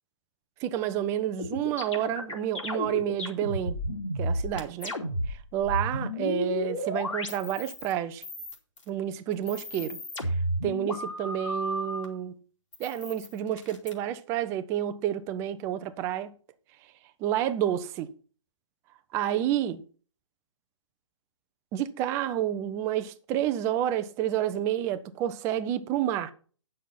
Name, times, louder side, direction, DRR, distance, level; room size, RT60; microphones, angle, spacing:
voice 1, 0.6-3.8 4.2-4.9 5.3-8.2 8.9-10.0 10.6-12.4 12.8-16.3 17.2-18.1 19.1-19.8 21.7-26.3, right 11 dB, 15° right, 0.6 m, -29 dB
sound 1, 1.4-7.9 8.2-8.9 9.3-12.1 12.7-13.9, left 1 dB, 70° left, 2.9 m, -32 dB
9.1 x 6.3 x 5.7 m
figure-of-eight pair, 135°, 17 cm